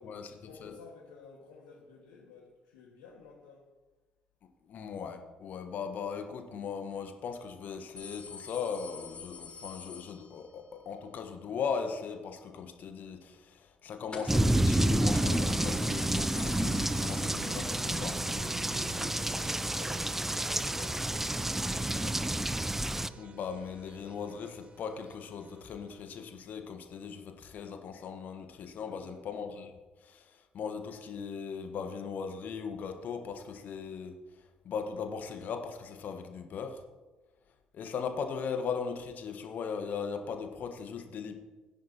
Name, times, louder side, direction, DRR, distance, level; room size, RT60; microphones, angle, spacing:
voice 1, 0.0-3.6 17.4-22.4 28.8-29.2, left 4 dB, 70° left, -3 dB, 1.9 m, -52 dB
voice 2, 4.7-18.1 23.2-29.7 30.0-30.2 30.5-34.1 34.6-36.8 37.7-41.3, left 6 dB, 50° left, 6 dB, 1.3 m, -38 dB
sound 1, 8.0-10.7 14.1-14.5 14.8-14.9 15.1-17.9 18.2-18.3 19.3-19.4, left 5 dB, 30° left, 4.1 m, -46 dB
sound 2, 14.3-23.1, right 1 dB, 10° right, 0.5 m, -29 dB
sound 3, 16.7-26.4, right 4 dB, 35° right, 1.0 m, -48 dB
17.5 x 10.0 x 2.9 m, 1.2 s
figure-of-eight pair, 50°, 4 cm